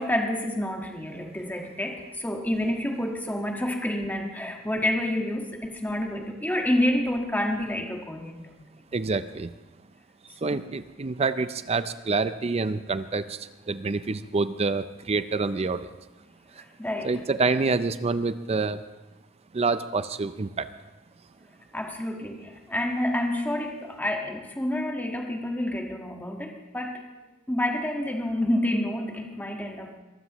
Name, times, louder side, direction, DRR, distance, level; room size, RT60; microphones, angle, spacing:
voice 1, 0.0-8.6 10.4-10.6 16.6-17.2 21.7-27.0 27.5-29.9, left 1 dB, 10° left, 2 dB, 1.6 m, -29 dB
voice 2, 8.9-9.5 10.4-15.9 16.6-16.7 17.0-18.8 19.5-20.7, right 4 dB, 30° right, 13 dB, 0.5 m, -27 dB
23.0 x 15.0 x 3.0 m, 1.1 s
head